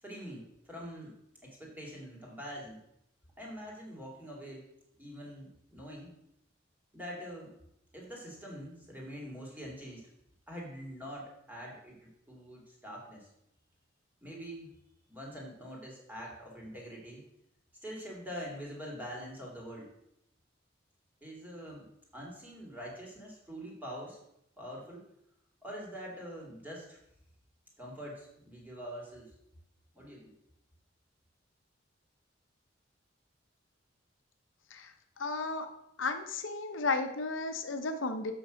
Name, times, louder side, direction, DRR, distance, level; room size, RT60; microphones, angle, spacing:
voice 1, 0.0-1.1 1.4-2.8 3.4-4.6 5.0-6.1 6.9-7.5 7.9-10.0 10.5-13.3 14.2-14.7 15.1-17.2 17.8-19.9 21.2-21.9 22.1-24.2 24.6-25.1 25.6-27.0 27.8-29.3 29.9-30.3, equal, 10° right, -3 dB, 2.3 m, -44 dB
voice 2, 35.2-35.7 36.0-38.3, left 3 dB, 85° left, 6 dB, 0.9 m, -33 dB
7.6 x 6.3 x 5.0 m, 0.79 s
head